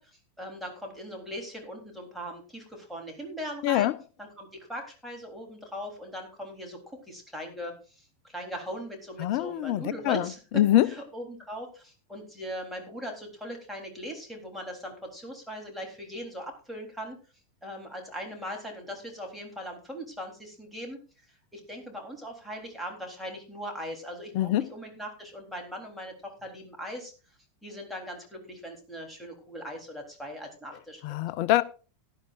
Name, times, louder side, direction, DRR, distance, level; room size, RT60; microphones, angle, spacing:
voice 1, 0.0-3.9 4.2-10.4 10.8-17.2 17.6-21.0 21.5-27.1 27.6-31.2, equal, ahead, 3.6 m, -40 dB
voice 2, 3.6-3.9 9.2-10.9 24.3-24.7 31.0-31.6, left 14 dB, 45° left, 0.6 m, -24 dB
17.0 x 11.5 x 2.6 m
figure-of-eight pair, 90°, 0 cm